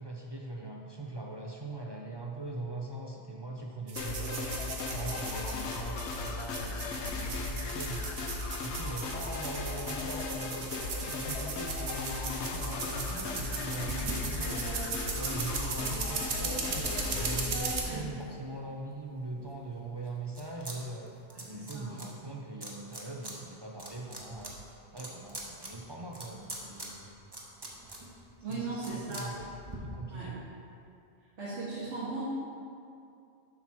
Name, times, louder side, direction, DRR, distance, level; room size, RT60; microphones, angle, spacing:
voice 1, 0.0-4.5 4.9-8.1 8.6-10.7 11.1-14.7 15.1-21.1 21.4-24.6 24.9-27.0 28.5-29.5 29.8-30.4, right 2 dB, 40° right, -1 dB, 0.3 m, -41 dB
sound 1, 3.9-17.8, right 4 dB, 85° right, 1.3 m, -38 dB
sound 2, 4.0-17.5, left 3 dB, 70° left, 0.9 m, -36 dB
sound 3, 13.8-18.9 19.4-20.8 21.0-22.1 22.6-23.3 23.7-29.8, right 1 dB, 20° right, 0.9 m, -43 dB
voice 2, 21.3-22.0 28.4-29.3 30.1-30.3 31.4-32.2, right 3 dB, 70° right, -9 dB, 1.7 m, -38 dB
7.4 x 5.9 x 4.5 m, 2.5 s
omnidirectional pair, 1.3 m